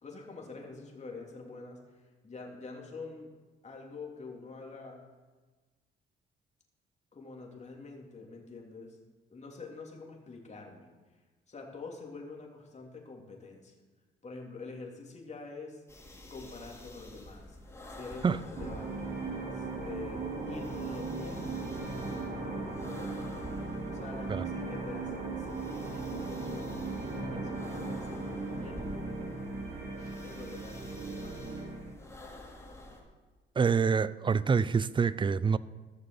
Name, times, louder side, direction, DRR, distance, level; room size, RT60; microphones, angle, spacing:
voice 1, 0.0-3.3 3.6-5.0 7.1-9.0 9.3-10.9 11.5-13.7 14.2-15.8 16.3-17.6 17.9-19.2 19.5-23.3 23.9-26.7 27.1-29.1 30.2-31.4, left 3 dB, 35° left, 3.0 m, -46 dB
sound 1, 15.9-33.0, left 1 dB, 15° left, 3.3 m, -49 dB
sound 2, 18.6-31.9, right 3 dB, 55° right, 4.0 m, -37 dB
voice 2, 33.6-35.6, right 5 dB, 25° right, 0.4 m, -26 dB
15.5 x 6.7 x 7.0 m
cardioid pair, 90°, 20 cm